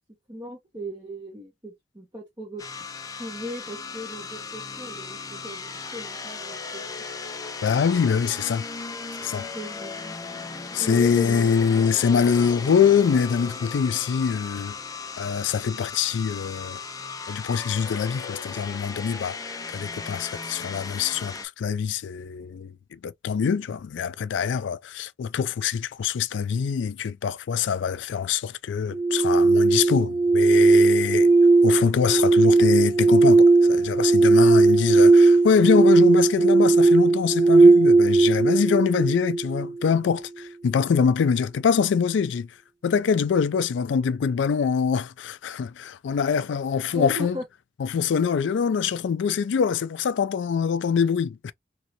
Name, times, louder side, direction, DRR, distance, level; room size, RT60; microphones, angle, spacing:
voice 1, 0.3-2.6 3.2-7.0 9.5-10.2 10.8-11.5 46.9-47.4, equal, 20° right, 1.0 m, -37 dB
sound 1, 2.6-21.5, left 4 dB, 20° left, 0.4 m, -36 dB
voice 2, 7.6-8.6 9.2-9.5 10.7-14.8 15.2-16.8 17.3-19.4 19.7-31.3 31.6-42.5 42.8-47.4 47.8-51.5, left 6 dB, 85° left, 0.4 m, -24 dB
sound 2, 28.9-39.9, right 3 dB, 60° right, 1.1 m, -17 dB
3.0 x 2.7 x 2.8 m
head